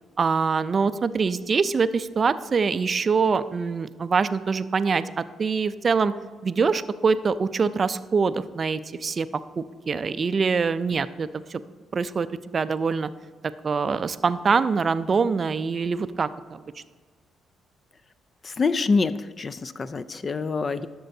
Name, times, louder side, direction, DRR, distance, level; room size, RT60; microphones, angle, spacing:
voice 1, 0.2-6.1 6.4-9.3 9.6-11.6 11.9-13.1 13.6-16.6, right 5 dB, 40° right, 14 dB, 0.4 m, -24 dB
voice 2, 18.4-20.9, left 4 dB, 35° left, 13 dB, 0.4 m, -26 dB
11.5 x 6.8 x 2.7 m, 1.5 s
cardioid pair, 90°, 0 cm